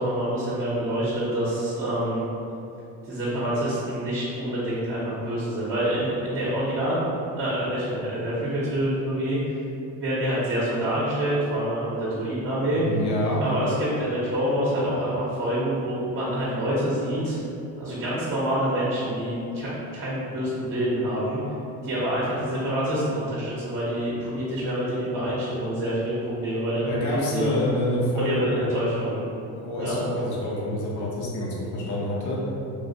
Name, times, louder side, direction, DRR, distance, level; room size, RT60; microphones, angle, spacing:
voice 1, 0.0-2.2 3.1-6.9 7.4-9.4 10.0-12.8 13.4-17.4 17.8-21.4 21.8-27.6 28.2-29.2 29.8-29.9, right 1 dB, 35° right, -8 dB, 0.7 m, -27 dB
voice 2, 12.7-13.4 26.9-28.7 29.6-32.4, left 1 dB, 50° left, -5 dB, 0.7 m, -27 dB
3.3 x 2.4 x 2.7 m, 2.7 s
cardioid pair, 125°, 39 cm